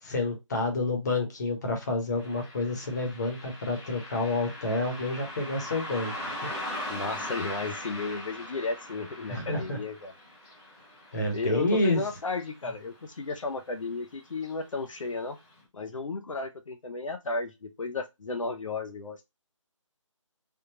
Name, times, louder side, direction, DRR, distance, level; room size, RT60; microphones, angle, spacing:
voice 1, 0.0-6.6 9.3-9.8 11.1-12.0, left 2 dB, 35° left, 1.0 m, -29 dB
Car passing by, 2.2-13.0 13.3-13.4 14.3-14.5 15.0-15.1 15.6-15.7, left 1 dB, 10° left, 0.9 m, -40 dB
voice 2, 6.9-10.1 11.3-15.4 15.7-19.2, left 3 dB, 75° left, 0.7 m, -34 dB
3.5 x 2.2 x 2.8 m
figure-of-eight pair, 165°, 17 cm